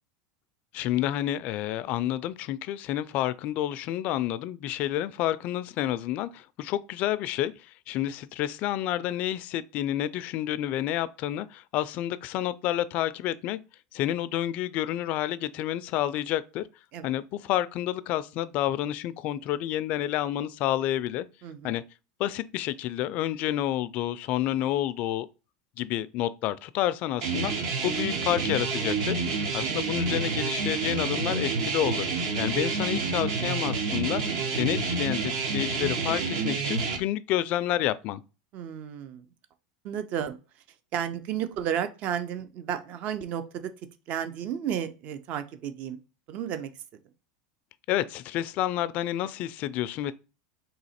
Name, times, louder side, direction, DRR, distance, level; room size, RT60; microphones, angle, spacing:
voice 1, 0.7-13.6 13.9-16.6 17.0-21.3 21.6-21.8 22.2-25.3 25.8-34.2 34.5-38.2 47.9-50.1, left 13 dB, 45° left, 0.3 m, -29 dB
voice 2, 21.4-21.7 38.5-39.2 39.8-40.4 40.9-43.7 44.1-46.0 46.3-46.7, right 9 dB, 45° right, 0.5 m, -32 dB
sound 1, 27.2-37.0, right 4 dB, 65° right, 1.0 m, -28 dB
3.9 x 2.8 x 4.2 m
supercardioid pair, 135°, 3 cm